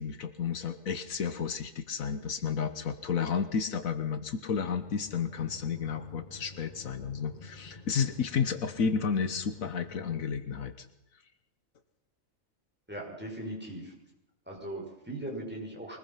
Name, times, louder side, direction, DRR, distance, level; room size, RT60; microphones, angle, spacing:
voice 1, 0.0-10.9, left 6 dB, 75° left, 11 dB, 1.6 m, -32 dB
sound 1, 4.7-10.3, left 2 dB, 35° left, 2.0 m, -50 dB
voice 2, 12.9-13.9 14.5-16.0, right 1 dB, 5° right, -2 dB, 6.2 m, -39 dB
24.0 x 20.5 x 5.7 m, 0.91 s
omnidirectional pair, 1.4 m